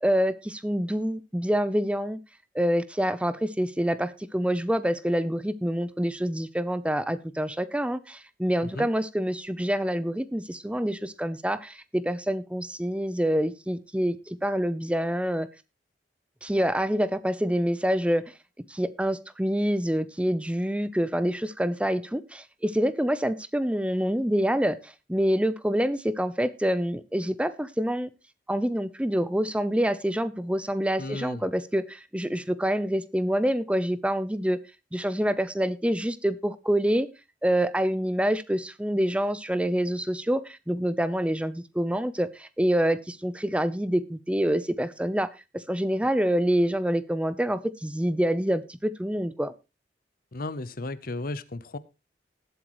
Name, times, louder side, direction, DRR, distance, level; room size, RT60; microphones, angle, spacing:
voice 1, 0.0-2.2 2.5-15.5 16.4-18.3 18.7-28.1 28.5-34.6 34.9-37.1 37.4-49.5, equal, 5° right, 15 dB, 0.6 m, -26 dB
voice 2, 31.0-31.4 50.3-51.8, left 2 dB, 55° left, 17 dB, 0.8 m, -34 dB
19.5 x 8.0 x 3.1 m, 0.26 s
head